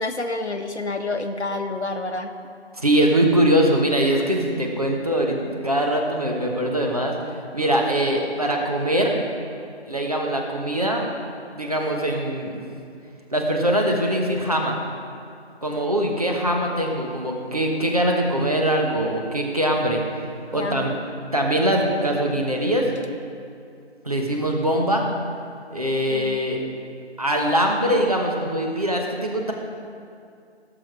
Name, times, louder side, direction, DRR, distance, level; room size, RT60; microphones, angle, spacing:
voice 1, 0.0-2.3 20.5-21.0 26.1-26.4, left 2 dB, 80° left, 5 dB, 1.3 m, -28 dB
voice 2, 2.7-7.1 7.5-9.2 9.9-11.1 11.6-12.6 13.3-14.8 15.6-20.0 20.5-20.9 21.3-22.9 24.0-25.1 25.7-26.6 27.2-29.5, right 1 dB, 35° right, 0 dB, 1.2 m, -22 dB
16.5 x 6.9 x 4.7 m, 2.4 s
figure-of-eight pair, 175°, 33 cm